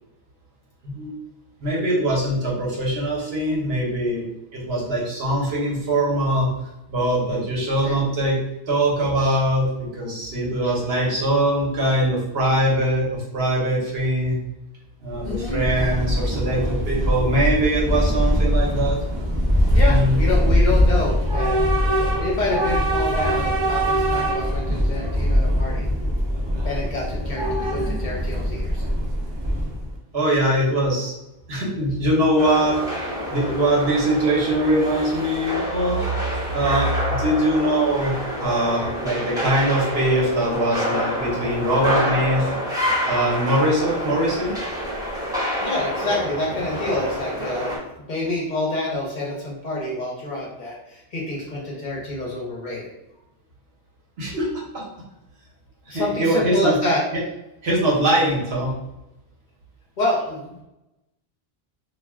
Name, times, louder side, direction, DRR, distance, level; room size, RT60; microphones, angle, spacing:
voice 1, 1.6-4.2 4.5-6.5 6.9-8.4 8.7-14.4 15.0-19.0 19.9-20.2 30.1-31.1 31.5-32.8 33.3-36.1 36.5-38.1 38.4-42.5 43.1-44.5 54.2-54.5 54.7-54.8 55.9-56.8 57.6-58.8, right 1 dB, 70° right, -4 dB, 1.1 m, -22 dB
Train / Subway metro underground, 15.1-30.0, equal, 40° right, 0.4 m, -22 dB
voice 2, 15.2-15.6 19.7-21.6 21.9-25.9 26.6-28.8 43.0-43.1 45.2-45.3 45.6-47.8 48.1-52.9 55.9-57.0 60.0-60.6, left 2 dB, 50° left, -3 dB, 0.8 m, -27 dB
sound 1, 32.4-47.8, equal, 5° right, 0.7 m, -28 dB
2.4 x 2.2 x 3.4 m, 0.89 s
omnidirectional pair, 1.1 m